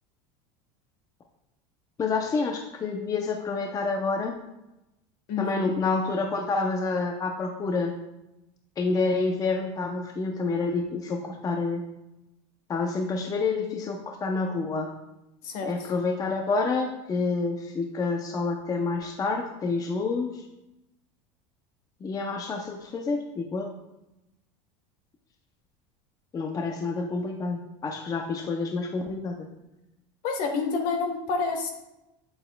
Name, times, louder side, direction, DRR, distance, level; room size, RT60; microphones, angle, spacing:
voice 1, 2.0-4.4 5.4-7.9 8.8-11.8 12.7-14.9 15.7-20.5 22.0-23.7 26.3-29.5, left 3 dB, 25° left, 3 dB, 0.6 m, -28 dB
voice 2, 5.3-5.7 15.4-15.7 30.2-31.7, left 4 dB, 60° left, 5 dB, 1.4 m, -28 dB
7.9 x 7.7 x 2.3 m, 0.93 s
supercardioid pair, 120°, 15 cm